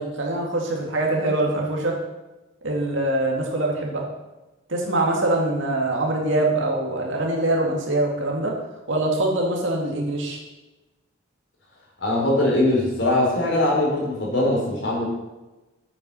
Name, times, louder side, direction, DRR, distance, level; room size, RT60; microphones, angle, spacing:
voice 1, 0.0-2.0 2.6-4.0 4.7-8.5 8.9-10.4, right 2 dB, 70° right, 0 dB, 2.2 m, -23 dB
voice 2, 12.0-15.0, left 1 dB, 65° left, -2 dB, 3.9 m, -21 dB
8.6 x 8.5 x 5.5 m, 1.1 s
head